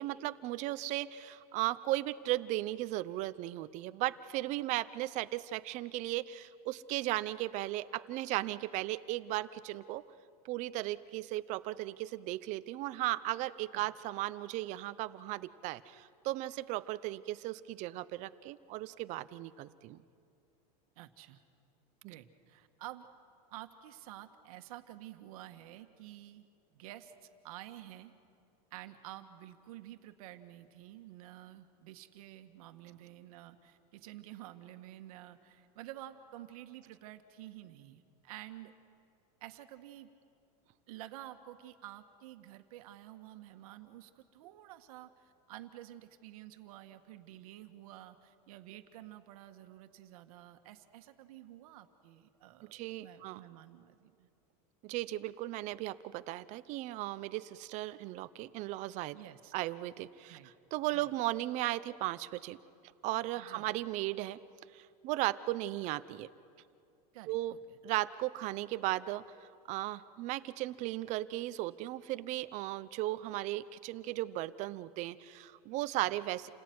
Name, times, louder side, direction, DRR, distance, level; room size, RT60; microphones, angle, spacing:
voice 1, 0.0-10.0 10.4-20.0 52.7-53.4 54.8-59.2 59.5-60.4 60.7-62.6 63.0-64.4 64.7-66.3 67.3-67.5 67.8-69.2 69.7-76.5, right 16 dB, 35° right, 15 dB, 0.8 m, -36 dB
voice 2, 20.9-21.4 22.1-23.1 23.5-26.5 26.7-28.1 28.7-38.7 39.4-40.1 40.9-54.3 59.1-59.5 60.3-60.5 60.9-61.1 63.3-63.7 67.1-67.8 76.0-76.1, right 14 dB, 65° right, 8 dB, 1.7 m, -50 dB
29.0 x 18.5 x 9.5 m, 2.4 s
supercardioid pair, 155°, 20 cm